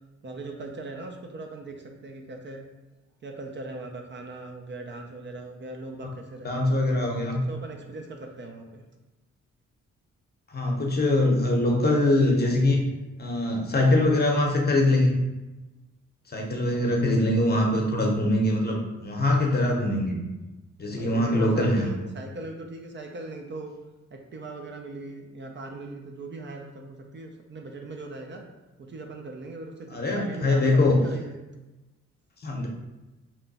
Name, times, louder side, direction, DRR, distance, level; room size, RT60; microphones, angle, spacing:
voice 1, 0.2-2.7 3.2-6.7 7.3-8.8 20.9-23.7 24.1-28.4 28.8-31.4, right 2 dB, 40° right, 2 dB, 0.5 m, -40 dB
voice 2, 6.4-7.4 10.5-12.8 13.2-15.2 16.3-20.2 20.8-21.9 29.9-31.0 32.4-32.7, left 1 dB, 35° left, 0 dB, 0.8 m, -23 dB
2.9 x 2.2 x 4.0 m, 1.1 s
cardioid pair, 80°, 29 cm